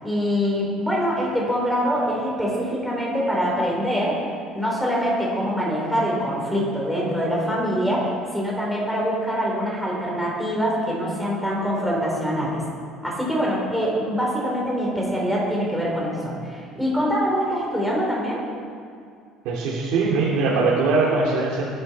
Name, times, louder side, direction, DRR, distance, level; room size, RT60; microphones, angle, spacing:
voice 1, 0.0-4.3 4.5-12.6 13.0-18.4, equal, ahead, -4 dB, 4.6 m, -24 dB
voice 2, 19.4-21.6, right 3 dB, 75° right, -7 dB, 3.3 m, -21 dB
21.5 x 11.5 x 4.7 m, 2.3 s
cardioid pair, 155°, 0 cm